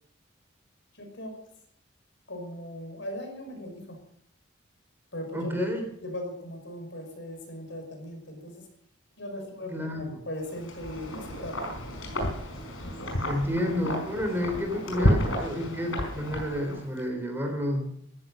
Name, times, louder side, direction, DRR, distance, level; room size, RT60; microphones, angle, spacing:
voice 1, 0.9-1.4 2.3-4.0 5.1-5.8 6.0-8.7 9.2-11.7, left 1 dB, 65° left, 4 dB, 5.7 m, -38 dB
voice 2, 5.3-5.8 9.7-10.1 13.3-17.9, left 1 dB, 10° right, 4 dB, 3.5 m, -30 dB
Wind, 10.5-17.0, equal, 80° left, 4.9 m, -31 dB
15.0 x 14.5 x 6.5 m, 0.68 s
head